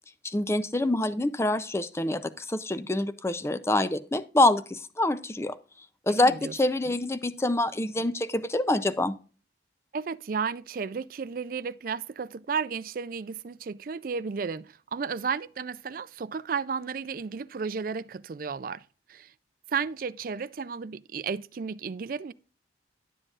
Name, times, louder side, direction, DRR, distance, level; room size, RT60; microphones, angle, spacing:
voice 1, 0.2-5.6 6.1-9.2, left 2 dB, 15° left, 0.5 m, -26 dB
voice 2, 6.1-6.5 6.9-7.0 9.9-18.8 19.1-19.3 19.7-22.3, right 5 dB, 50° right, 0.4 m, -33 dB
11.0 x 7.6 x 2.4 m
head